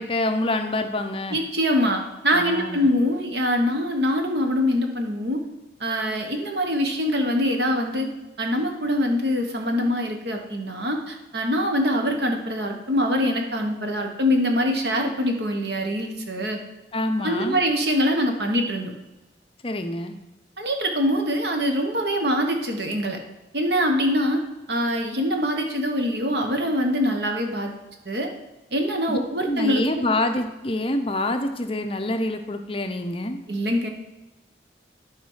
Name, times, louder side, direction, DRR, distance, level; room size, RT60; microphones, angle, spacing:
voice 1, 0.0-1.4 2.3-2.9 16.9-17.6 19.6-20.1 29.1-29.2 29.4-33.4, left 1 dB, 30° left, 6 dB, 0.6 m, -26 dB
voice 2, 1.3-5.4 5.8-8.1 8.4-16.6 17.2-18.9 20.6-23.2 23.5-24.4 24.7-27.7 28.0-28.3 28.7-30.0 33.5-33.9, equal, 65° right, 3 dB, 1.3 m, -24 dB
11.5 x 4.2 x 5.6 m, 1.1 s
head